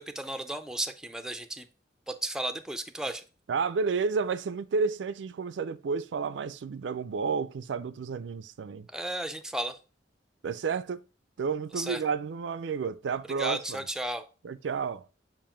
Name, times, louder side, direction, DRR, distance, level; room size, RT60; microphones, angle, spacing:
voice 1, 0.0-1.6 2.1-3.2 8.9-9.7 11.8-12.0 13.4-14.2, right 1 dB, 5° right, 0.4 m, -34 dB
voice 2, 3.5-8.9 10.4-11.0 11.4-13.9 14.4-15.1, right 5 dB, 80° right, 0.4 m, -31 dB
7.4 x 2.5 x 5.0 m
head